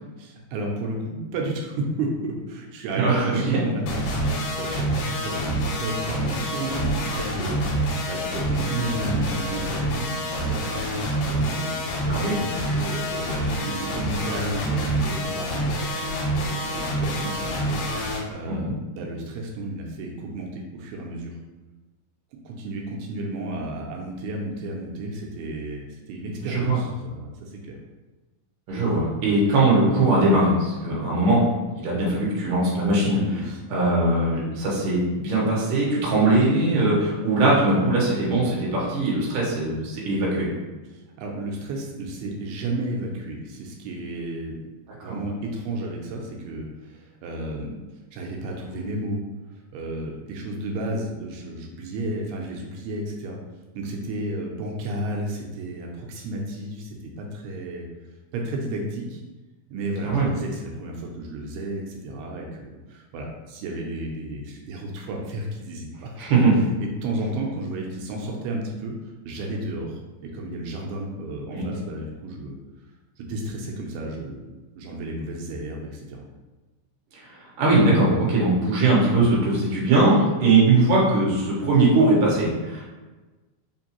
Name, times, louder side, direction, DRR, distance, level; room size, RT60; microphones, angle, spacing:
voice 1, 0.2-4.2 4.6-11.8 12.4-15.6 16.3-17.8 18.3-21.3 22.5-27.8 33.3-33.6 40.9-44.6 45.0-47.7 48.1-49.2 49.5-53.4 53.8-57.9 58.3-59.2 59.7-66.1 66.8-72.5 73.2-76.3, right 1 dB, 85° right, 0 dB, 2.6 m, -32 dB
voice 2, 2.9-3.6 12.1-12.4 18.5-18.7 26.4-26.8 28.7-31.4 31.8-33.3 33.7-40.5 45.0-45.2 60.0-60.3 66.2-66.6 71.5-71.7 77.6-82.8, right 2 dB, 70° right, -5 dB, 2.4 m, -20 dB
sound 1, 3.9-18.2, right 1 dB, 75° left, 2.5 m, -27 dB
5.7 x 2.6 x 2.8 m, 1.2 s
omnidirectional pair, 4.5 m